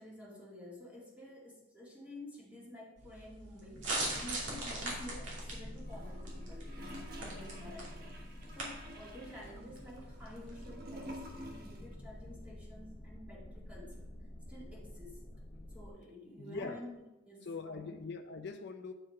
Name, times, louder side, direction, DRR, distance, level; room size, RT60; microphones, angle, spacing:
voice 1, 0.0-14.1 14.5-15.2 15.7-18.0, left 1 dB, 10° right, -5 dB, 2.1 m, -51 dB
sound 1, 3.0-10.7, right 2 dB, 75° right, 2.6 m, -42 dB
sound 2, 3.7-15.9, left 1 dB, 40° left, 0.9 m, -48 dB
Gurgling / Toilet flush, 5.8-11.9 12.2-12.3, right 1 dB, 55° right, 1.3 m, -50 dB
voice 2, 16.4-16.8 17.5-18.9, left 4 dB, 60° left, 5 dB, 0.6 m, -42 dB
8.8 x 4.7 x 4.3 m, 0.98 s
head